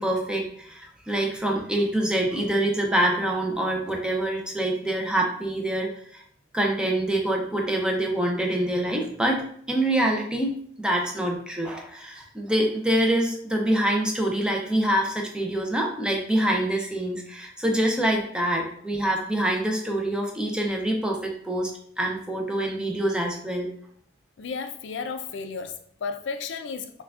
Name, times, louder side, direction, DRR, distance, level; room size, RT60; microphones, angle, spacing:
voice 1, 0.0-6.2 6.5-21.7 22.0-23.7, right 1 dB, 5° right, 0.5 m, -25 dB
voice 2, 24.4-27.0, left 5 dB, 70° left, 0.4 m, -33 dB
5.8 x 2.2 x 2.4 m
head